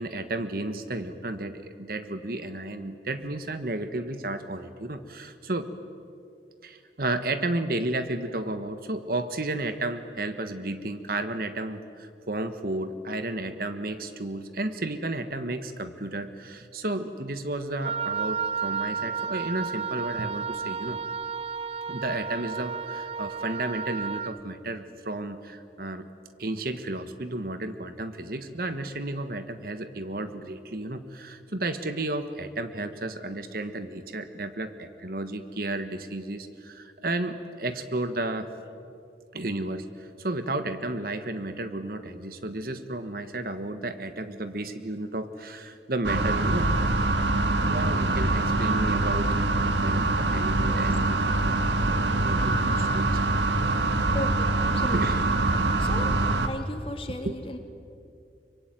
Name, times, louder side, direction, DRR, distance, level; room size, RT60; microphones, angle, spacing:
voice 1, 0.0-5.7 6.6-21.0 21.9-26.1 26.4-38.5 39.3-46.7 47.7-53.4 53.8-54.0 54.9-55.2 57.1-57.4, right 2 dB, 55° right, 10 dB, 1.4 m, -33 dB
Wind instrument woodwind instrument, 17.8-24.4, right 6 dB, 35° right, 0.6 m, -32 dB
sound 1, 46.0-56.5, right 2 dB, 90° right, 1.8 m, -24 dB
voice 2, 50.6-50.9 54.1-55.2 55.8-56.1 56.4-57.6, left 1 dB, 30° left, 4 dB, 2.7 m, -36 dB
25.0 x 24.0 x 9.3 m, 2.5 s
head